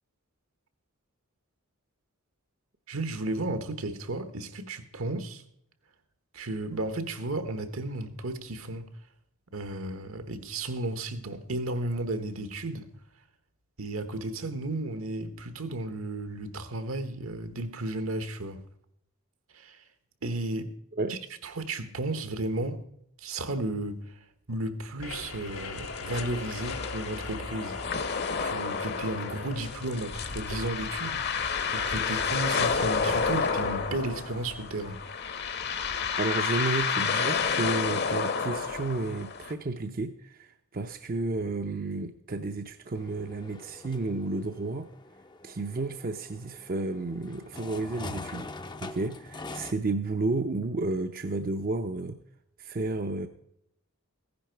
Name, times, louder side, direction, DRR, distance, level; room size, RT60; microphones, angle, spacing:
voice 1, 2.9-5.4 6.3-8.9 9.5-12.9 13.8-18.6 19.5-19.8 20.2-20.7 21.1-22.8 23.2-27.8 28.4-31.2 31.7-35.0, right 2 dB, 75° right, 1.2 m, -34 dB
sound 1, 25.0-34.3, left 3 dB, 75° left, 1.9 m, -43 dB
sound 2, 25.2-39.5, left 5 dB, 50° left, 0.9 m, -30 dB
voice 2, 36.2-44.9 45.4-48.5 48.8-52.2 52.6-53.3, right 3 dB, 40° right, 0.6 m, -32 dB
sound 3, 42.9-49.7, left 3 dB, 20° left, 0.5 m, -43 dB
15.5 x 10.5 x 4.5 m
head